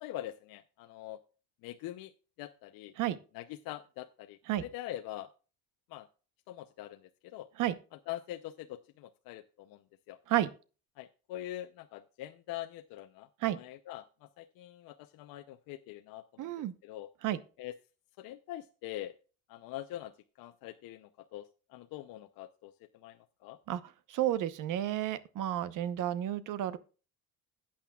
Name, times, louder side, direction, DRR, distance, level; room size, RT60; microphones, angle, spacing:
voice 1, 0.0-1.2 1.6-2.1 2.4-2.9 3.3-5.3 5.9-6.1 6.5-7.5 8.1-9.8 10.1-10.2 11.0-13.3 13.6-16.5 16.8-17.1 17.6-17.7 18.2-19.2 19.5-20.1 20.4-23.6, left 14 dB, 70° left, 0.7 m, -44 dB
voice 2, 16.4-16.7 17.2-17.4 23.7-26.8, right 12 dB, 55° right, 0.9 m, -31 dB
14.5 x 8.8 x 2.3 m
cardioid pair, 135°, 36 cm